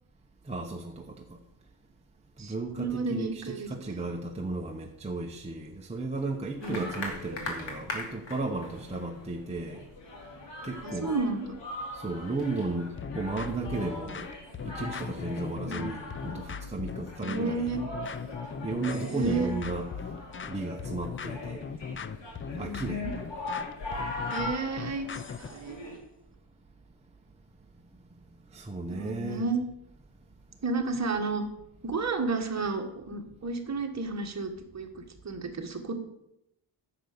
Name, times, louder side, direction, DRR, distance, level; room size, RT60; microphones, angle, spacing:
voice 1, 0.4-1.2 2.4-9.9 10.6-11.1 11.9-14.3 14.6-17.8 18.6-19.9 20.5-21.6 22.6-23.0 28.5-29.4, right 3 dB, 15° right, 1 dB, 0.8 m, -34 dB
voice 2, 2.4-4.0 6.6-6.9 10.8-11.6 15.7-15.9 17.2-17.9 19.1-19.5 22.6-23.1 24.3-25.1 25.4-25.9 28.9-29.6 30.6-31.4 31.8-35.9, right 3 dB, 35° right, 3 dB, 1.5 m, -32 dB
sound 1, 6.6-26.0, left 2 dB, 65° left, 2.7 m, -41 dB
sound 2, 13.0-25.6, left 6 dB, 30° left, 0.4 m, -39 dB
10.0 x 7.0 x 6.6 m, 0.84 s
wide cardioid pair, 150°, 47 cm